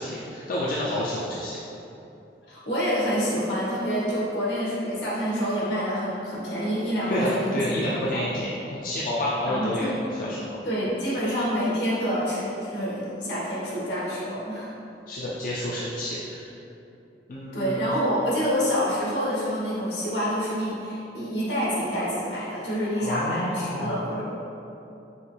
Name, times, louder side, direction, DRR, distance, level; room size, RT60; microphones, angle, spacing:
voice 1, 0.0-1.6 7.1-9.9 10.2-10.4 15.1-16.5 17.3-17.9 23.0-24.0, left 1 dB, 50° left, -6 dB, 0.4 m, -29 dB
voice 2, 2.5-7.6 8.1-8.3 9.4-9.9 10.6-14.7 17.5-24.2, equal, 75° left, -7 dB, 1.4 m, -27 dB
5.5 x 2.9 x 3.2 m, 2.8 s
head